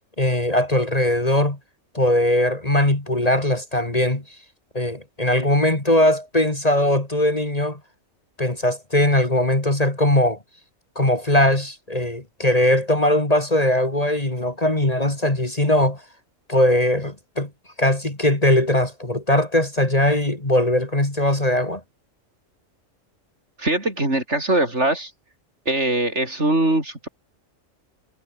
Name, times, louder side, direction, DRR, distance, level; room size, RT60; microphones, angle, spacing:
voice 1, 0.2-1.6 1.9-4.4 4.7-7.8 8.4-10.4 10.9-16.0 16.5-17.5 17.8-21.8, left 1 dB, 30° left, 3.2 m, -20 dB
voice 2, 23.6-25.1 25.7-27.1, right 1 dB, 55° right, 6.3 m, -22 dB
omnidirectional pair, 1.4 m